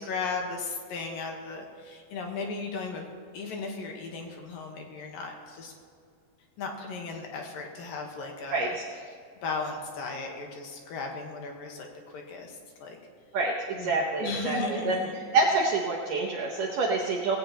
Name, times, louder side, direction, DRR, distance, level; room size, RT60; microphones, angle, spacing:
voice 1, 0.0-3.1 3.3-5.7 6.6-8.8 9.1-9.2 9.4-13.0 13.8-15.2, left 4 dB, 65° left, 1 dB, 2.6 m, -36 dB
voice 2, 8.5-8.8 13.3-17.4, right 3 dB, 75° right, -1 dB, 2.0 m, -27 dB
18.5 x 16.5 x 3.0 m, 2.2 s
omnidirectional pair, 5.0 m